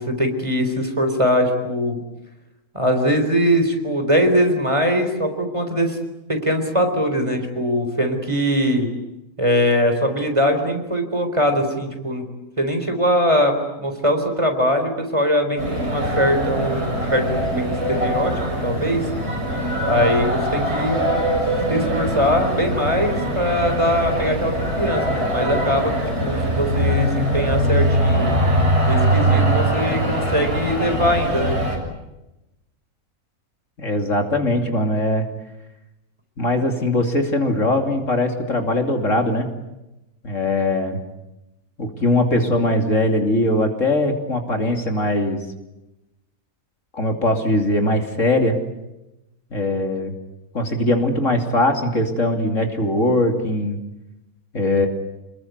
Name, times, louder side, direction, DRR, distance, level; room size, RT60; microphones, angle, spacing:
voice 1, 0.0-2.0 2.7-6.0 6.3-8.9 9.4-12.2 12.6-19.0 19.8-21.0 21.7-25.9 26.2-28.3 28.9-31.6, equal, 20° right, 5 dB, 4.1 m, -21 dB
sound 1, 15.6-31.8, right 1 dB, 45° right, 7.1 m, -22 dB
voice 2, 33.8-35.3 36.4-39.5 40.2-41.0 41.8-45.4 46.9-48.6 49.5-50.1 50.5-53.8 54.5-54.9, left 1 dB, 55° left, 4 dB, 3.2 m, -20 dB
29.0 x 21.5 x 9.4 m, 0.95 s
omnidirectional pair, 1.6 m